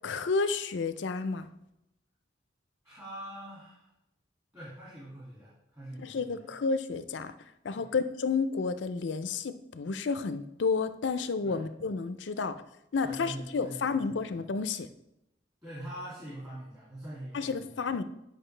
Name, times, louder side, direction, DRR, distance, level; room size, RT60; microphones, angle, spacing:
voice 1, 0.0-1.5 6.0-7.3 7.6-12.6 12.9-14.9 17.3-18.0, left 4 dB, 70° left, 11 dB, 0.5 m, -31 dB
voice 2, 2.8-3.9 4.5-6.5 7.7-8.0 11.4-11.7 12.3-12.4 13.0-14.2 15.6-17.8, right 1 dB, 20° right, -9 dB, 2.4 m, -44 dB
9.0 x 5.3 x 3.3 m, 0.86 s
head